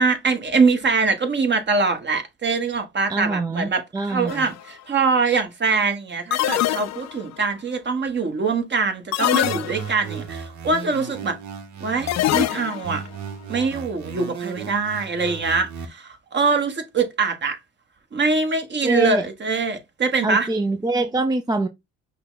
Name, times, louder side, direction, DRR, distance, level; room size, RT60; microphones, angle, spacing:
voice 1, 0.0-11.4 11.8-13.0 13.5-17.6 18.1-20.5, right 4 dB, 35° right, 1.2 m, -23 dB
voice 2, 3.1-4.4 18.8-19.3 20.2-21.7, right 2 dB, 15° right, 0.4 m, -24 dB
sound 1, 4.3-4.6 6.3-7.3 9.1-10.1 12.1-13.0, left 14 dB, 60° left, 0.4 m, -23 dB
sound 2, 9.4-12.4 12.8-15.9, right 6 dB, 70° right, 1.0 m, -35 dB
5.5 x 2.2 x 3.9 m
cardioid pair, 90°, 30 cm